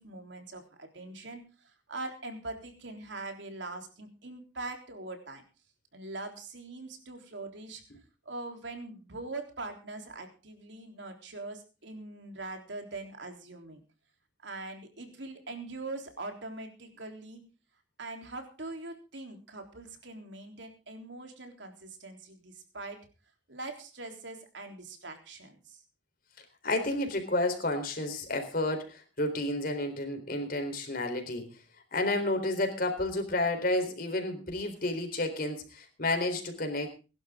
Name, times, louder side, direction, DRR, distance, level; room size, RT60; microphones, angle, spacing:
voice 1, 0.0-5.4 5.9-7.8 8.3-13.8 14.4-17.5 18.0-23.1 23.5-25.8, right 2 dB, 70° right, 4 dB, 3.6 m, -42 dB
voice 2, 26.6-31.5 31.9-36.9, left 2 dB, 50° left, 6 dB, 3.9 m, -31 dB
21.5 x 11.5 x 3.7 m, 0.33 s
head